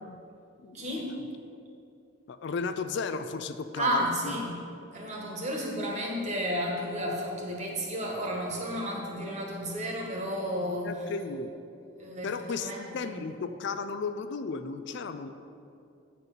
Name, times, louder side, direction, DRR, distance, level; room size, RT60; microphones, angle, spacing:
voice 1, 0.7-1.1 3.8-4.6 4.9-11.1 12.0-13.3, equal, 35° right, -1 dB, 1.5 m, -32 dB
voice 2, 2.3-4.3 10.6-11.5 12.2-15.3, left 4 dB, 60° left, 9 dB, 0.4 m, -35 dB
8.8 x 4.2 x 6.6 m, 2.5 s
head